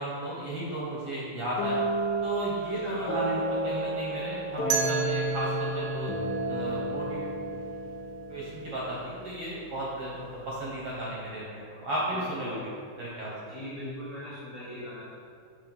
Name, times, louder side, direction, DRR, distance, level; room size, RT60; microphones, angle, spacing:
voice 1, 0.0-1.8 2.2-6.1 6.4-7.3 8.3-10.2 10.4-12.6 13.0-13.3, right 1 dB, 60° right, -7 dB, 1.6 m, -34 dB
sound 1, 1.6-9.3, right 2 dB, 65° left, 1.0 m, -31 dB
voice 2, 2.8-3.1 12.1-12.6 13.4-15.0, left 1 dB, 45° left, -11 dB, 1.5 m, -40 dB
sound 2, 4.7-7.6, right 5 dB, 90° right, 2.2 m, -35 dB
7.3 x 3.4 x 5.3 m, 2.3 s
omnidirectional pair, 3.8 m